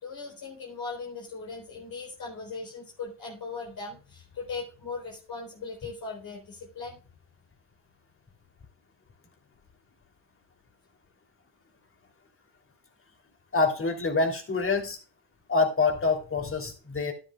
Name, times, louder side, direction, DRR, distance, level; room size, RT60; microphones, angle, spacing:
voice 1, 0.0-7.0, left 4 dB, 55° left, -3 dB, 3.9 m, -39 dB
voice 2, 13.5-15.0 15.5-17.1, left 3 dB, 30° left, 5 dB, 3.1 m, -26 dB
12.0 x 10.0 x 2.3 m, 0.36 s
hypercardioid pair, 60°, 42 cm